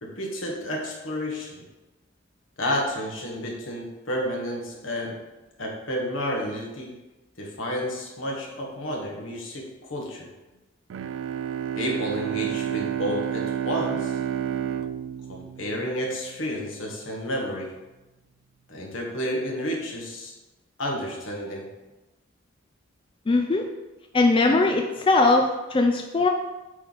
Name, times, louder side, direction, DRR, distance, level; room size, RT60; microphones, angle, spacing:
voice 1, 0.0-1.6 2.6-5.2 5.6-6.9 7.4-10.3 11.7-14.2 15.3-17.8 18.7-20.3 20.8-21.7, equal, 80° left, -1 dB, 1.5 m, -31 dB
Bowed string instrument, 10.9-16.4, right 9 dB, 75° right, 0.3 m, -30 dB
voice 2, 23.3-23.7 24.1-26.3, left 3 dB, 25° left, 3 dB, 0.4 m, -20 dB
7.8 x 3.3 x 4.1 m, 1.1 s
head